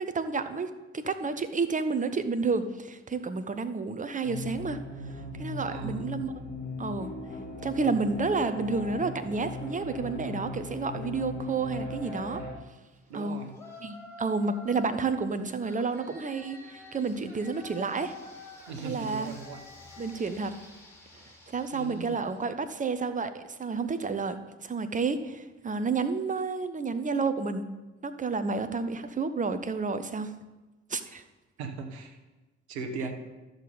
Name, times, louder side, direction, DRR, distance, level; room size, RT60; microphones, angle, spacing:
voice 1, 0.0-4.8 5.4-6.3 6.8-7.1 7.6-12.4 13.1-13.4 13.8-18.1 18.8-19.3 20.0-20.5 21.5-27.7 28.0-30.3 30.9-31.2, right 4 dB, 25° right, 11 dB, 0.8 m, -30 dB
sound 1, 4.2-12.5, left 3 dB, 25° left, 3.6 m, -38 dB
voice 2, 5.6-6.1 13.1-13.5 18.7-19.6 21.7-22.3 31.6-32.2 32.7-33.1, right 4 dB, 75° right, 6 dB, 1.1 m, -38 dB
Yell, 13.5-15.1 15.6-22.3, left 2 dB, 10° left, 3.0 m, -48 dB
13.0 x 6.4 x 4.0 m, 1.1 s
figure-of-eight pair, 45°, 33 cm